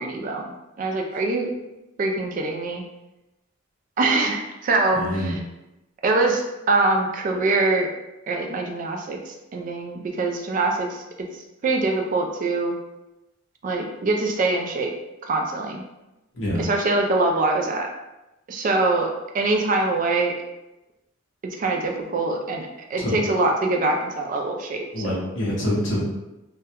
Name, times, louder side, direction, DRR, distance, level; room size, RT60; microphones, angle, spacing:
voice 1, 0.0-1.5 2.0-2.8 4.0-5.4 6.0-7.9 8.3-11.0 11.6-12.7 13.6-14.9 15.2-15.8 16.6-17.9 18.5-20.3 21.6-25.3, right 3 dB, 40° right, 2 dB, 0.3 m, -24 dB
voice 2, 4.9-5.3 16.3-16.6 23.0-23.1 24.9-26.0, equal, 65° left, -5 dB, 0.8 m, -25 dB
2.2 x 2.1 x 2.7 m, 0.98 s
head